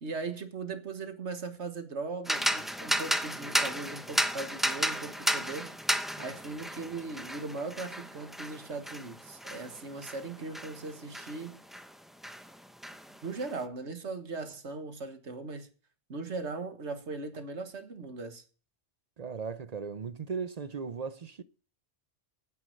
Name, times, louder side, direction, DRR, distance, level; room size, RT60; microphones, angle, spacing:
voice 1, 0.0-5.7 6.2-11.6 13.2-15.7 16.1-18.4, right 3 dB, 85° right, 1.8 m, -39 dB
sound 1, 2.2-11.9 12.2-13.5, equal, ahead, 0.6 m, -33 dB
voice 2, 19.2-21.4, right 5 dB, 45° right, 0.6 m, -37 dB
9.5 x 9.1 x 6.4 m
omnidirectional pair, 1.1 m